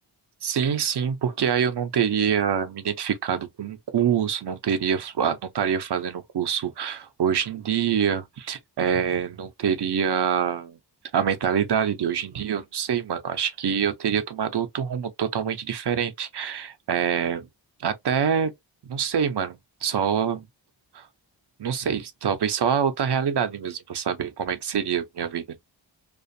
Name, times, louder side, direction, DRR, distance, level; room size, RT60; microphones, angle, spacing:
voice 1, 0.4-10.8 11.1-17.5 17.8-18.5 18.9-20.4 20.9-21.0 21.6-25.4, right 8 dB, 65° right, 0.6 m, -25 dB
2.4 x 2.4 x 2.6 m
cardioid pair, 60°, 45 cm